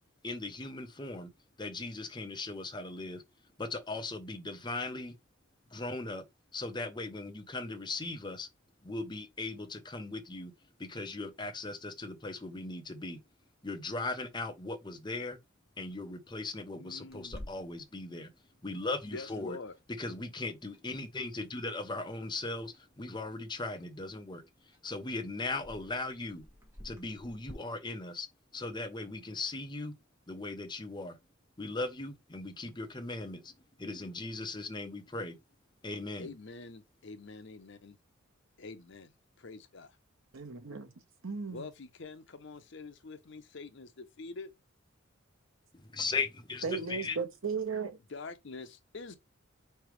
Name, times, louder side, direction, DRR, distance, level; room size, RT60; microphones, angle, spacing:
voice 1, 0.2-1.3 1.6-3.2 3.6-5.1 5.7-6.2 6.5-8.5 8.8-10.5 10.8-13.2 13.6-15.4 15.8-18.3 18.6-19.6 20.0-24.4 24.8-26.4 26.8-28.3 28.5-29.9 30.3-31.2 31.6-33.5 33.8-35.4 35.8-36.3 45.9-47.2, left 3 dB, 20° left, 0.7 m, -38 dB
voice 2, 16.7-17.5 19.0-19.7 36.2-38.0 38.6-39.9 41.5-44.5 48.1-49.2, left 3 dB, 60° left, 0.7 m, -46 dB
Clock, 17.1-27.5, left 1 dB, 15° right, 1.7 m, -54 dB
voice 3, 40.3-40.9 41.2-41.7 46.6-48.0, right 5 dB, 75° right, 1.0 m, -35 dB
4.8 x 3.3 x 3.1 m
head